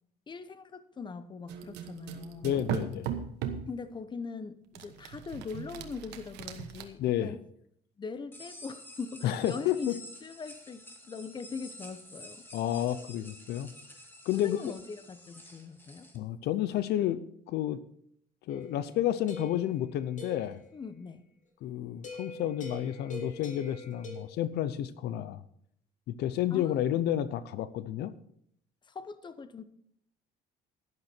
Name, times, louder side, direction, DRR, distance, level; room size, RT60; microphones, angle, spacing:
voice 1, 0.3-2.6 3.7-7.4 8.0-9.9 10.2-12.4 14.3-16.1 20.7-21.3 26.5-27.0 28.9-29.6, left 5 dB, 25° left, 13 dB, 0.9 m, -41 dB
sound 1, 1.5-3.7 4.8-6.9, right 8 dB, 85° right, 1.2 m, -38 dB
voice 2, 2.4-3.1 7.0-7.3 9.2-9.9 12.5-13.7 14.3-14.6 16.1-17.2 17.5-17.8 18.5-20.6 21.6-25.4 26.1-28.1, left 12 dB, 75° left, 15 dB, 0.7 m, -30 dB
sound 2, 8.3-16.2, left 1 dB, 10° left, 2.1 m, -50 dB
sound 3, 18.5-20.6 22.0-24.2, left 1 dB, 50° left, 2.6 m, -44 dB
12.0 x 11.0 x 4.4 m, 0.67 s
cardioid pair, 110°, 17 cm